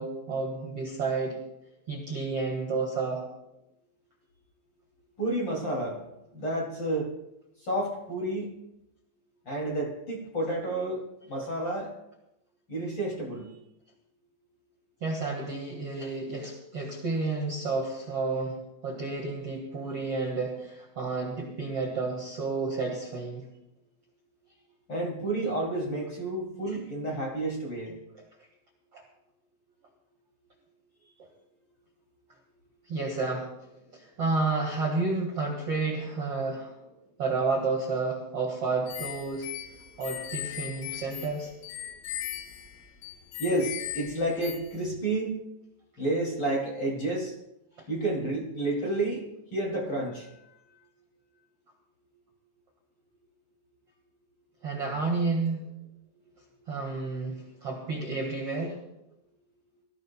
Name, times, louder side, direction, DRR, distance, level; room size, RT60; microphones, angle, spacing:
voice 1, 0.0-1.4 1.9-3.2 15.0-18.6 18.8-23.5 28.9-29.0 32.9-33.5 33.9-36.7 37.2-39.5 40.0-41.5 47.8-47.9 54.6-55.7 56.7-58.8, right 3 dB, 70° right, -1 dB, 1.3 m, -31 dB
voice 2, 5.2-6.1 6.3-7.1 7.6-8.6 9.4-11.9 12.7-13.5 24.9-28.0 43.4-45.4 46.0-47.3 47.9-49.2 49.5-50.3, right 1 dB, 30° left, -2 dB, 2.4 m, -30 dB
sound 1, 38.9-44.8, left 12 dB, 85° left, 3.8 m, -39 dB
25.0 x 15.0 x 2.3 m, 0.88 s
omnidirectional pair, 5.7 m